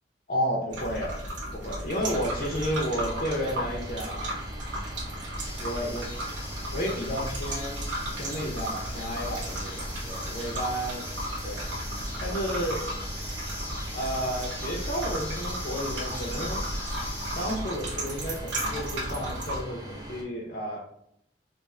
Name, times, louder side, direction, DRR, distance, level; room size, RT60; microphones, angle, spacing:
voice 1, 0.3-1.2 1.5-4.4 5.6-6.1 6.7-7.9 8.1-11.0 11.4-11.7 12.2-12.8 13.9-16.6 17.3-20.8, equal, 45° left, -2 dB, 0.5 m, -32 dB
sound 1, 0.7-19.6, right 1 dB, 80° right, 0.8 m, -35 dB
sound 2, 2.0-20.2, equal, 20° right, 0.5 m, -41 dB
sound 3, 5.4-17.6, left 1 dB, 10° left, 0.9 m, -41 dB
2.5 x 2.4 x 4.1 m, 0.74 s
head